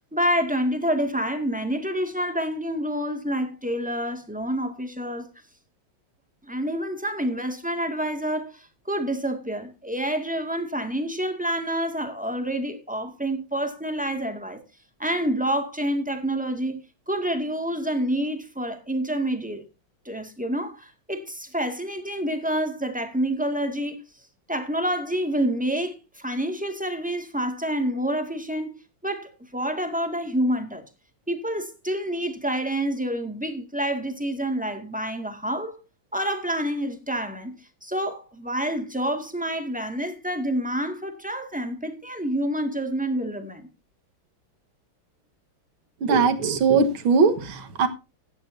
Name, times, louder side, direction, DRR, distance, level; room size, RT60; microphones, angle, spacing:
voice 1, 0.1-5.3 6.4-14.6 15.0-19.6 20.1-24.0 24.5-28.7 29.0-30.8 31.3-35.8 36.1-43.7, equal, 5° right, 1.8 m, -28 dB
voice 2, 46.0-47.9, right 5 dB, 85° right, 2.2 m, -20 dB
16.5 x 11.5 x 2.7 m
omnidirectional pair, 2.2 m